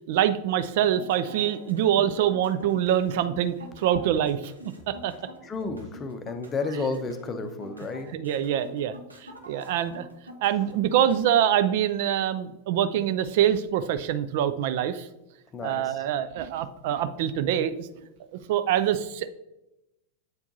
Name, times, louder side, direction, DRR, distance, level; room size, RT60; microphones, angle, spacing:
voice 1, 0.1-4.5 4.9-5.1 8.1-8.9 9.2-10.1 10.4-15.1 15.6-17.9 18.5-19.3, right 10 dB, 50° right, 12 dB, 0.3 m, -25 dB
sound 1, 0.8-11.4, equal, 80° right, 0.9 m, -46 dB
voice 2, 5.4-8.2 15.5-16.0, left 3 dB, 25° left, 9 dB, 0.6 m, -32 dB
8.0 x 4.4 x 2.7 m, 0.90 s
figure-of-eight pair, 90°, 0 cm